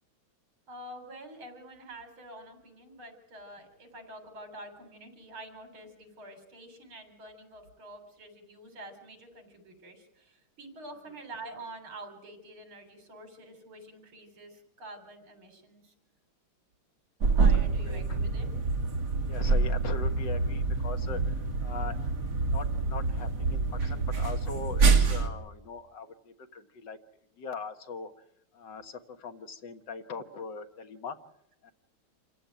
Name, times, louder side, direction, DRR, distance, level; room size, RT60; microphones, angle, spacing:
voice 1, 0.7-15.9 17.3-18.5, right 1 dB, 75° right, 6 dB, 4.8 m, -47 dB
sound 1, 17.2-25.3, right 4 dB, 50° right, 2.5 m, -26 dB
voice 2, 17.8-18.2 19.3-21.3 21.6-22.0 22.5-27.0 27.4-28.1 28.5-31.2 31.6-31.7, left 4 dB, 60° left, 6 dB, 2.0 m, -40 dB
27.0 x 16.0 x 9.2 m, 0.79 s
omnidirectional pair, 2.3 m